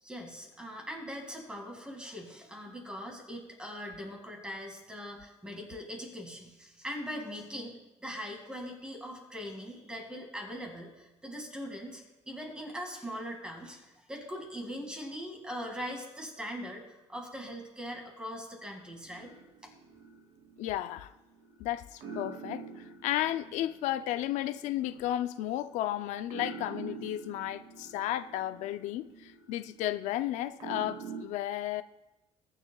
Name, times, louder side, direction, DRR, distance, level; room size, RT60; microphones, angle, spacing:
voice 1, 0.0-7.7 8.0-19.3 19.6-19.7, equal, 5° right, 2.1 m, -41 dB
sound 1, 19.0-21.6 22.0-31.2, right 5 dB, 70° right, 2.5 m, -47 dB
voice 2, 20.6-21.1 21.6-31.8, left 13 dB, 90° left, 0.5 m, -33 dB
21.0 x 9.9 x 2.3 m
cardioid pair, 175°, 12 cm